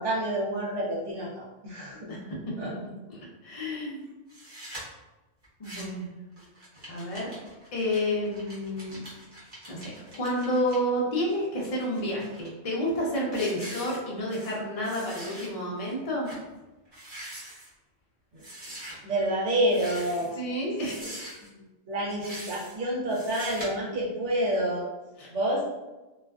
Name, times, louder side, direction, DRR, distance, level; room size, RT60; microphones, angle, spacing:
voice 1, 0.0-2.0 2.6-2.7 18.3-18.4 19.0-20.4 21.0-21.2 21.4-21.5 21.9-24.9 25.3-25.6, right 1 dB, 75° right, -4 dB, 0.9 m, -28 dB
voice 2, 3.1-4.0 5.6-6.1 6.9-7.3 7.7-9.0 9.7-16.3 20.4-21.2 25.2-25.3, equal, 45° left, -3 dB, 0.5 m, -30 dB
sound 1, 4.3-4.8 5.4-6.0 6.4-10.8 11.3-12.5 12.9-13.1 13.3-14.6 14.8-15.5 15.8-15.9 16.2-16.4 16.9-17.7 18.4-18.9 19.6-20.3 20.8-21.5 22.1-22.7 23.1-23.7, right 1 dB, 25° right, 0.8 m, -43 dB
2.4 x 2.3 x 2.3 m, 1.1 s
omnidirectional pair, 1.2 m